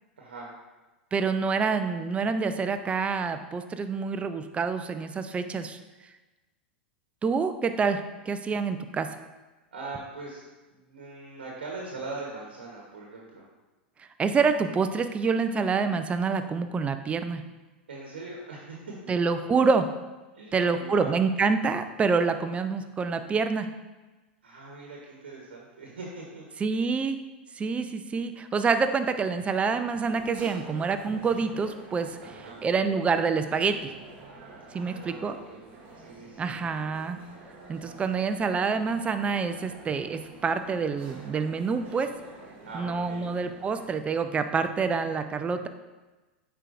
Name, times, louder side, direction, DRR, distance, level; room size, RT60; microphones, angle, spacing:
voice 1, 0.2-0.5 9.7-13.5 17.9-19.0 20.3-21.3 24.4-26.4 32.2-32.6 34.7-36.5 42.7-43.3, right 3 dB, 80° right, -2 dB, 1.1 m, -41 dB
voice 2, 1.1-5.8 7.2-8.0 8.3-9.1 14.2-17.4 19.1-19.9 20.5-23.7 26.6-27.2 27.6-32.2 32.6-33.8 34.7-35.4 36.4-37.2 37.7-42.1 42.7-45.7, right 5 dB, 20° right, 9 dB, 0.5 m, -27 dB
sound 1, 30.0-43.9, right 3 dB, 40° right, 1.6 m, -48 dB
9.0 x 4.5 x 2.6 m, 1.2 s
hypercardioid pair, 95°, 6 cm